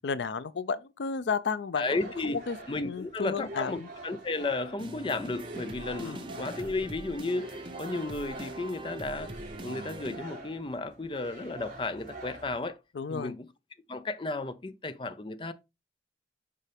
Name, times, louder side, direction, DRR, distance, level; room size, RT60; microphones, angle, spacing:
voice 1, 0.0-2.0 2.2-2.6 2.8-3.9 6.0-6.2 12.9-13.3, left 5 dB, 85° left, 0.5 m, -32 dB
voice 2, 1.8-2.4 2.7-9.3 9.6-12.8 13.1-13.5 13.9-15.5, left 3 dB, 30° left, 0.5 m, -33 dB
sound 1, 1.9-12.6, right 2 dB, 45° right, 3.3 m, -46 dB
sound 2, 4.8-10.2, right 2 dB, 30° right, 0.8 m, -43 dB
6.7 x 5.0 x 3.4 m
head